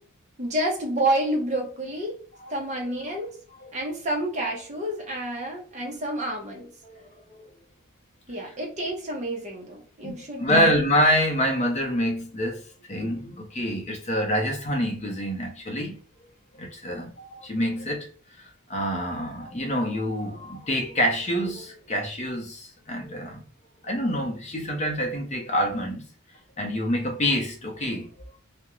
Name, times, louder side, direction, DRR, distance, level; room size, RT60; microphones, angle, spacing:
voice 1, 0.4-2.2 2.5-3.4 3.7-6.7 8.3-10.8, right 1 dB, 30° right, 0.6 m, -29 dB
voice 2, 10.0-16.0 16.6-18.1 18.4-23.5 23.8-26.1 26.6-28.1, equal, 30° left, 0.6 m, -26 dB
2.4 x 2.1 x 2.9 m
head